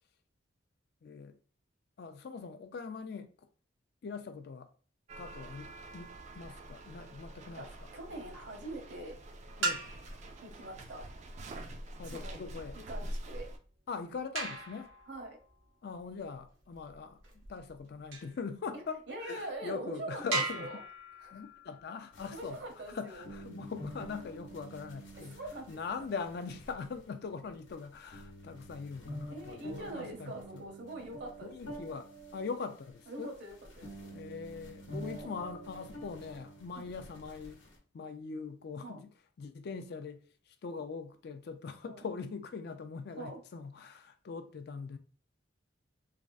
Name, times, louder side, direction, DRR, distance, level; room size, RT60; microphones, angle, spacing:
voice 1, 1.0-1.4 2.0-3.5 4.0-4.7 5.2-7.9 9.6-9.9 12.0-12.8 13.9-14.9 15.8-20.7 21.3-22.6 22.9-25.4 25.7-30.6 31.4-33.3 34.1-37.6 37.9-39.1 39.4-45.0, left 5 dB, 55° left, 0.4 m, -42 dB
sound 1, 5.1-13.6, right 1 dB, 35° right, 0.3 m, -46 dB
voice 2, 7.9-9.2 10.4-11.1 12.1-12.4 12.9-13.5 15.1-15.4 19.1-20.8 21.2-21.4 22.3-23.3 25.1-25.8 29.3-31.8 33.1-34.1 35.0-35.3 36.8-36.9 38.8-39.0 41.8-42.0 43.2-43.4, right 1 dB, 60° right, 0.8 m, -43 dB
sound 2, 8.1-8.6 9.4-10.3 12.0-18.4 19.1-19.2 19.7-19.8 20.3-23.0 25.1-26.0, right 3 dB, 90° right, 0.9 m, -40 dB
sound 3, 22.1-37.8, right 1 dB, 75° left, 0.9 m, -48 dB
3.4 x 2.0 x 2.5 m
head